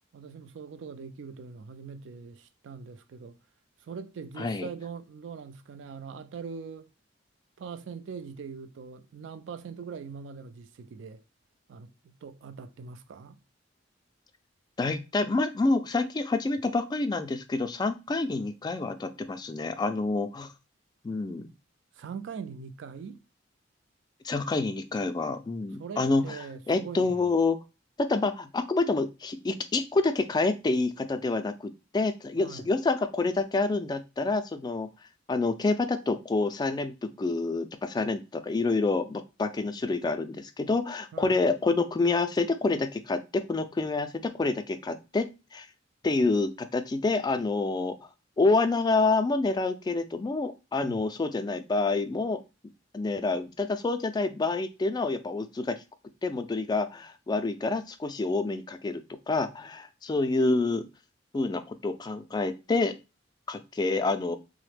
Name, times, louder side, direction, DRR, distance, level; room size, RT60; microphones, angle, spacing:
voice 1, 0.1-3.4 3.8-6.9 7.6-11.2 11.7-13.4 22.0-23.2 25.8-27.3 32.4-32.7 41.1-41.3 50.8-51.0, right 5 dB, 70° right, 0.3 m, -42 dB
voice 2, 4.4-4.7 14.8-20.5 21.0-21.5 24.2-26.2 26.7-27.6 28.0-34.9 35.3-45.7 46.0-47.9 48.4-52.4 52.9-55.8 56.2-59.0 59.3-60.8 61.3-62.9 63.5-64.4, left 3 dB, 20° left, 0.3 m, -27 dB
3.2 x 2.1 x 3.2 m
head